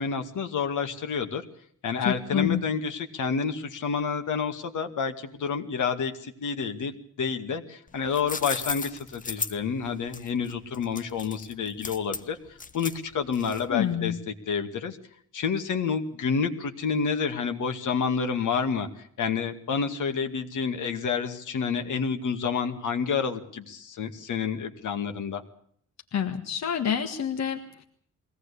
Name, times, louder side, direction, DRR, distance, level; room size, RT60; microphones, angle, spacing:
voice 1, 0.0-1.4 1.8-6.9 7.2-12.4 12.7-15.0 15.3-18.9 19.2-25.4, left 6 dB, 75° left, 6 dB, 2.2 m, -29 dB
voice 2, 2.0-2.6 13.7-14.2 26.1-27.8, left 8 dB, 60° left, 4 dB, 1.7 m, -28 dB
sound 1, 7.9-13.9, left 4 dB, 25° left, 1.0 m, -36 dB
22.5 x 17.5 x 8.4 m, 0.62 s
wide cardioid pair, 160°, 31 cm